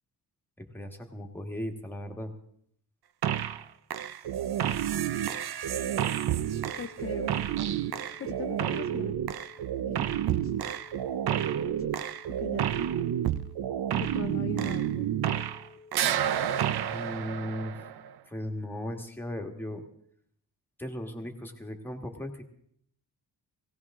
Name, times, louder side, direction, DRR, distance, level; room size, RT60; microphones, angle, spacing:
voice 1, 0.6-2.3 16.9-17.7 18.3-19.8 20.8-22.4, equal, 5° left, 3 dB, 1.5 m, -37 dB
sound 1, 3.2-3.6 3.9-15.7 15.9-18.1, right 10 dB, 65° right, 0.6 m, -30 dB
sound 2, 6.6-15.9, left 4 dB, 90° right, 3.0 m, -54 dB
voice 2, 6.8-7.3 8.2-9.2 9.9-10.1 10.4-10.5 12.4-12.7 14.0-15.1, left 6 dB, 35° left, 7 dB, 0.5 m, -39 dB
17.5 x 17.5 x 3.7 m, 0.67 s
wide cardioid pair, 155°, 41 cm